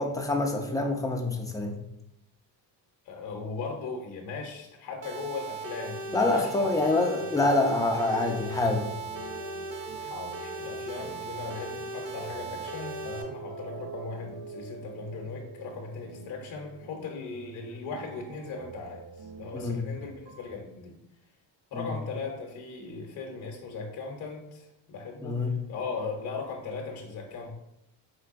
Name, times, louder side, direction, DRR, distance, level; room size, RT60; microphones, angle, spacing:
voice 1, 0.0-1.8 6.1-8.9 19.5-19.9 21.7-21.9 25.2-25.6, left 2 dB, 10° left, 2 dB, 0.4 m, -26 dB
voice 2, 3.1-6.7 10.0-21.0 21.7-27.5, left 4 dB, 55° left, 0 dB, 0.8 m, -38 dB
sound 1, 5.0-13.2, right 3 dB, 45° right, 0.6 m, -38 dB
sound 2, 6.5-20.5, right 4 dB, 85° right, 0.8 m, -46 dB
4.6 x 3.8 x 2.5 m, 0.83 s
cardioid pair, 135°, 45 cm